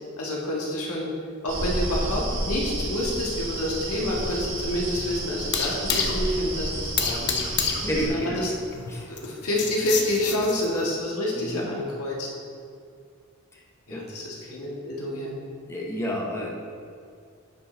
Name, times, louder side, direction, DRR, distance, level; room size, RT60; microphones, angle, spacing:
voice 1, 0.2-1.1 1.4-7.4 8.0-8.5 9.1-12.3 13.9-15.3, left 1 dB, 85° left, -3 dB, 1.5 m, -28 dB
sound 1, 1.5-8.1, right 1 dB, 60° right, 1.6 m, -31 dB
sound 2, 3.0-10.9, left 6 dB, 55° left, 0.7 m, -31 dB
voice 2, 7.8-8.4 8.9-9.1 11.3-11.7 13.5-13.6 13.9-14.0 15.7-16.5, equal, 15° left, -3 dB, 0.8 m, -30 dB
10.0 x 5.2 x 3.3 m, 2.2 s
head